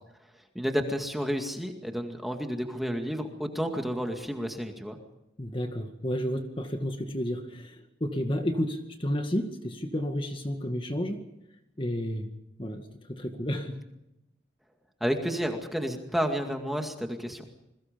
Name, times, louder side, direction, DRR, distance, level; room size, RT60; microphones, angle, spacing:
voice 1, 0.5-5.0 15.0-17.4, equal, ahead, 3 dB, 2.1 m, -31 dB
voice 2, 5.4-11.2 11.8-12.3 12.6-13.8, equal, 25° left, 5 dB, 2.0 m, -31 dB
28.5 x 22.0 x 5.3 m, 0.89 s
head